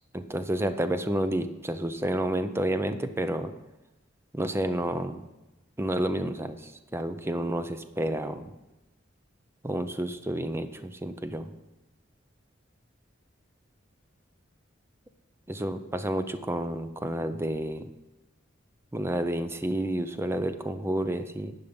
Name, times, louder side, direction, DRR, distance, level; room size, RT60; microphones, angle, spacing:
voice 1, 0.1-3.5 4.3-5.2 5.8-8.5 9.6-11.5 15.5-17.9 18.9-21.6, right 1 dB, 15° right, 10 dB, 0.6 m, -30 dB
10.5 x 5.4 x 6.9 m, 1.1 s
head